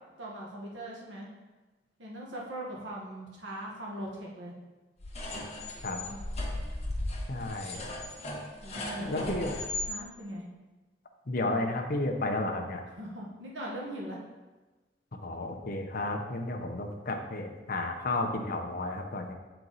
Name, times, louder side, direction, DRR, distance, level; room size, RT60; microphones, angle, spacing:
voice 1, 0.2-1.3 2.0-4.5 6.0-6.2 8.6-9.5 9.9-10.5 12.9-14.2, right 1 dB, 85° right, -3 dB, 1.4 m, -40 dB
sound 1, 5.0-9.9, left 1 dB, 35° left, 1.3 m, -36 dB
voice 2, 7.3-7.9 9.1-9.5 11.3-12.8 15.2-19.3, left 2 dB, 55° left, 2 dB, 0.8 m, -32 dB
7.9 x 4.6 x 4.0 m, 1.2 s
head